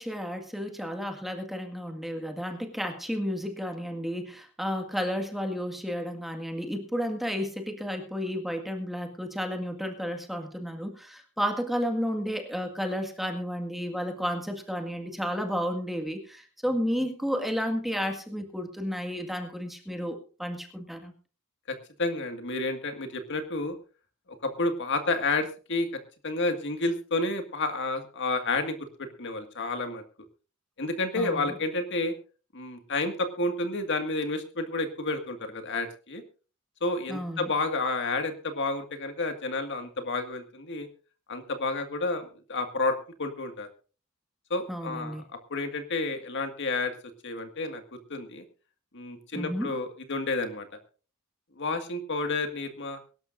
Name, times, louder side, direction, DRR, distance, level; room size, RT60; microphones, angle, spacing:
voice 1, 0.0-21.1 31.2-31.6 37.1-37.5 44.7-45.2 49.3-49.7, equal, ahead, 4 dB, 1.8 m, -32 dB
voice 2, 21.7-23.8 24.4-30.0 30.8-32.1 32.5-36.2 36.8-40.9 41.3-43.7 44.5-45.2 45.5-46.9 47.2-47.8 48.1-48.4 48.9-50.7 51.6-53.0, left 2 dB, 55° left, 7 dB, 1.9 m, -30 dB
23.5 x 12.0 x 2.6 m, 0.36 s
head